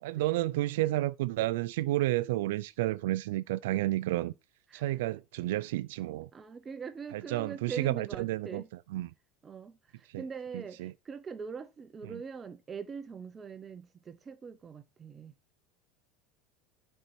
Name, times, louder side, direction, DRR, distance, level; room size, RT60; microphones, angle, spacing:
voice 1, 0.0-4.3 4.7-6.3 7.1-8.6 8.9-9.1 10.1-10.2 10.5-10.9 12.1-12.2, right 16 dB, 85° right, 0.4 m, -31 dB
voice 2, 6.3-8.7 9.4-15.3, right 5 dB, 20° right, 0.7 m, -42 dB
11.5 x 4.4 x 4.3 m
supercardioid pair, 145°, 0 cm